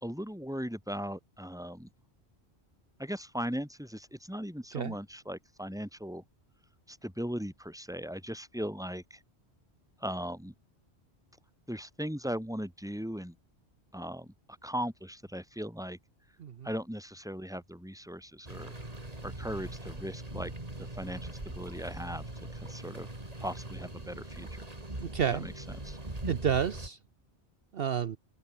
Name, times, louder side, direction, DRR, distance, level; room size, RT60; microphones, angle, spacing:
voice 1, 0.0-1.9 3.0-6.2 6.9-9.2 10.0-10.5 11.7-13.4 13.9-14.3 14.6-16.0 16.6-18.7 19.2-20.5 20.8-22.2 22.5-23.1 23.4-24.6 25.3-26.0, equal, 5° right, 3.8 m, -38 dB
sound 1, 18.4-26.9, right 2 dB, 35° right, 3.6 m, -41 dB
voice 2, 25.0-25.5 26.3-27.0 27.7-28.2, right 8 dB, 60° right, 1.0 m, -30 dB
omnidirectional pair, 1.1 m